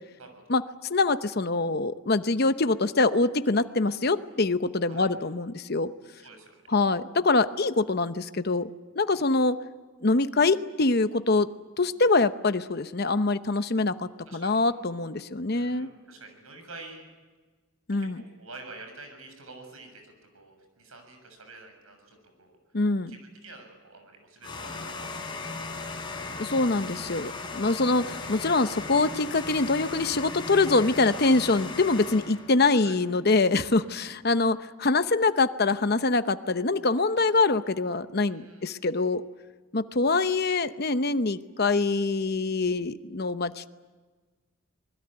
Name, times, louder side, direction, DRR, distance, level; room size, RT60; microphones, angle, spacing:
voice 1, 0.2-0.5 4.9-5.1 6.2-6.5 9.0-9.3 14.2-14.6 15.5-17.1 17.9-22.5 23.1-25.2 25.6-26.1 27.2-27.6 32.7-33.0 38.2-38.8, right 3 dB, 85° right, 5 dB, 6.8 m, -48 dB
voice 2, 0.9-5.9 6.7-9.6 10.0-11.5 11.8-15.9 17.9-18.2 22.7-23.1 26.4-39.2 39.7-43.7, left 3 dB, 50° left, 11 dB, 0.9 m, -24 dB
sound 1, 24.4-32.5, left 3 dB, 25° left, 3.9 m, -37 dB
26.0 x 21.0 x 8.9 m, 1.4 s
head